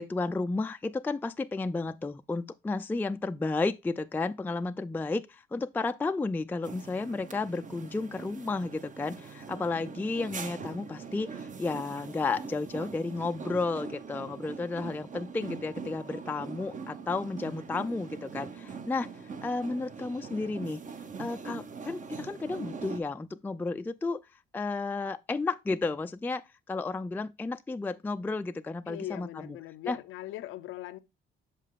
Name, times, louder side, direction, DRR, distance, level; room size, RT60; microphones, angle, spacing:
voice 1, 0.0-20.8 21.2-24.2 24.5-29.6 29.9-30.0, left 3 dB, 10° left, 0.3 m, -32 dB
sound 1, 6.6-23.0, right 5 dB, 40° right, 0.8 m, -42 dB
voice 2, 28.9-31.0, left 14 dB, 85° left, 0.6 m, -40 dB
6.5 x 5.4 x 3.6 m
cardioid pair, 90°, 20 cm